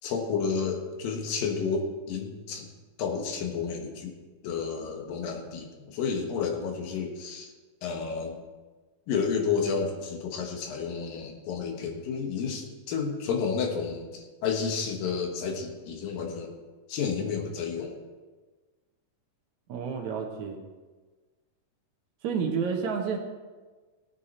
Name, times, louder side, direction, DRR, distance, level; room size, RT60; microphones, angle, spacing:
voice 1, 0.0-2.7 3.0-4.1 4.4-7.5 7.8-8.4 9.1-16.5 16.9-18.0, left 5 dB, 85° left, 3 dB, 3.1 m, -31 dB
voice 2, 19.7-20.7 22.2-23.2, right 6 dB, 65° right, 2 dB, 2.2 m, -30 dB
18.0 x 8.4 x 4.3 m, 1.3 s
omnidirectional pair, 3.9 m